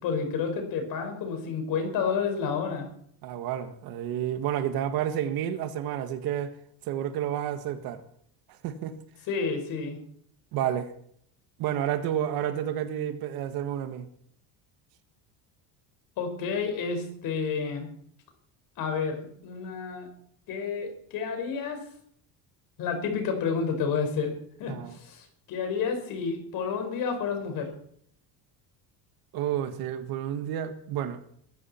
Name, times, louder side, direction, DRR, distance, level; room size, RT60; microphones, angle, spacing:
voice 1, 0.0-2.9 9.3-10.0 16.2-17.9 18.8-20.1 20.5-21.8 22.8-24.3 24.6-27.7, left 5 dB, 55° left, 5.1 m, -30 dB
voice 2, 3.2-6.5 6.8-8.0 8.6-9.0 10.5-10.9 11.6-14.1 24.7-25.0 29.3-31.2, right 10 dB, 60° right, 1.6 m, -30 dB
22.0 x 14.0 x 4.4 m
cardioid pair, 175°, 41 cm